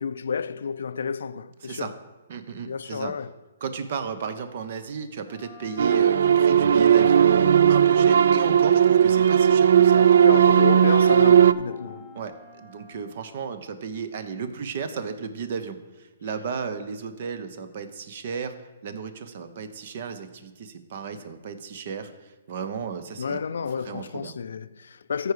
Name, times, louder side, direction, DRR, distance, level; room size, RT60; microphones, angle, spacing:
voice 1, 0.0-1.9 2.7-3.3 10.2-12.1 21.1-21.2 23.2-25.3, left 6 dB, 80° left, 0.4 m, -30 dB
voice 2, 2.3-3.1 3.6-10.4 12.1-18.5 18.8-23.4 23.7-24.3, right 6 dB, 50° right, 0.8 m, -34 dB
Wind instrument woodwind instrument, 5.2-13.3, right 2 dB, 5° right, 2.3 m, -47 dB
sound 1, 5.8-11.5, right 8 dB, 75° right, 0.3 m, -17 dB
14.0 x 4.7 x 4.9 m
hypercardioid pair, 165°, 0 cm